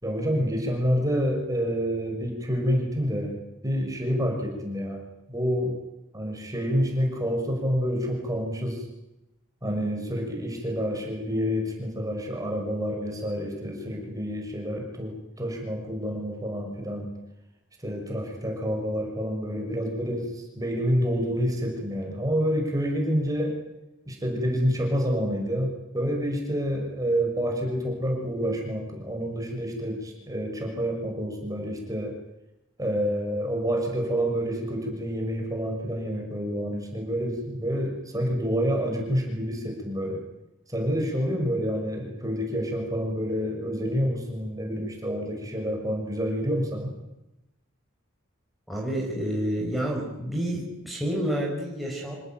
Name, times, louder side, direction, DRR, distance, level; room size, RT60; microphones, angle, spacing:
voice 1, 0.0-3.4 3.6-5.8 6.1-8.8 9.6-17.1 17.8-23.6 24.1-32.1 32.8-40.2 40.7-46.9, equal, 15° right, 2 dB, 6.1 m, -28 dB
voice 2, 48.7-52.2, equal, ahead, -3 dB, 5.5 m, -29 dB
27.0 x 17.5 x 9.2 m, 0.93 s
head